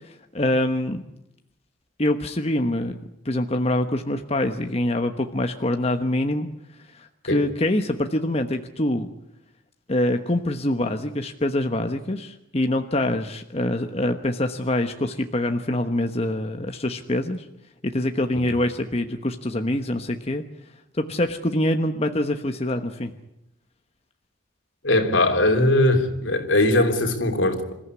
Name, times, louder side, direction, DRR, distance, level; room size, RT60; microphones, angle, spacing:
voice 1, 0.3-1.0 2.0-3.0 3.2-6.5 7.0-9.1 9.9-17.4 17.8-20.4 21.0-23.1, left 1 dB, 30° left, 5 dB, 1.2 m, -25 dB
voice 2, 24.8-27.7, left 1 dB, 85° left, 4 dB, 3.3 m, -20 dB
27.0 x 14.5 x 9.8 m, 0.85 s
head